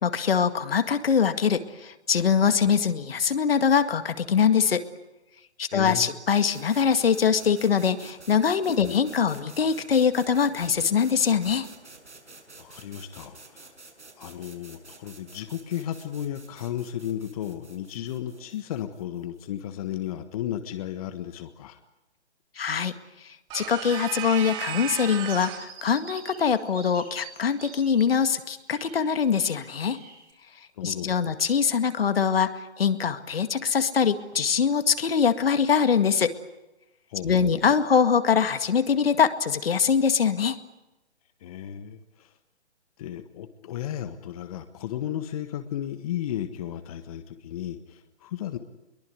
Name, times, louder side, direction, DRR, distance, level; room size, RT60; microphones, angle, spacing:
voice 1, 0.0-4.8 5.6-11.7 22.6-23.0 23.2-30.0 30.8-36.4 37.2-40.6, left 7 dB, 55° left, 9 dB, 2.1 m, -23 dB
voice 2, 5.7-6.1 8.7-9.0 12.6-13.7 14.2-21.8 30.7-31.2 37.1-37.5 41.4-42.4 43.0-48.6, left 11 dB, 30° left, 9 dB, 1.5 m, -34 dB
sound 1, 6.5-20.2, right 3 dB, 85° right, 6.8 m, -50 dB
sound 2, 23.5-25.8, right 13 dB, 15° right, 1.0 m, -34 dB
sound 3, 24.1-30.3, right 6 dB, 55° right, 7.2 m, -46 dB
23.0 x 22.5 x 9.6 m, 0.98 s
figure-of-eight pair, 140°, 34 cm